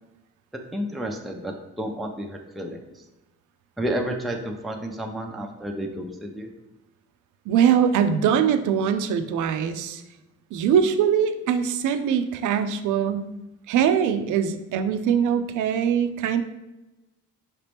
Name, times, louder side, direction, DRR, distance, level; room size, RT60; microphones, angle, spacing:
voice 1, 0.7-2.8 3.8-6.5, right 1 dB, ahead, 2 dB, 0.5 m, -31 dB
voice 2, 7.5-10.0 10.5-13.3 13.7-16.4, right 8 dB, 80° right, 8 dB, 0.5 m, -22 dB
5.1 x 2.9 x 3.4 m, 1.0 s
cardioid pair, 90°, 30 cm